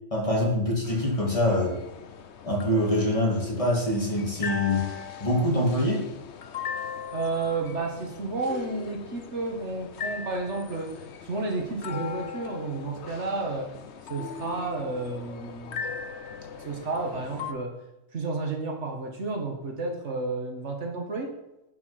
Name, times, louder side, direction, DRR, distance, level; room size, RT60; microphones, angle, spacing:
voice 1, 0.1-1.8 2.4-6.1, left 1 dB, 25° left, -1 dB, 2.5 m, -25 dB
sound 1, 0.8-17.5, left 6 dB, 65° left, 1.1 m, -39 dB
voice 2, 7.1-13.7 14.1-15.9 16.6-17.8 18.1-21.4, right 3 dB, 70° right, 2 dB, 2.0 m, -31 dB
11.0 x 6.0 x 5.9 m, 0.95 s
omnidirectional pair, 1.3 m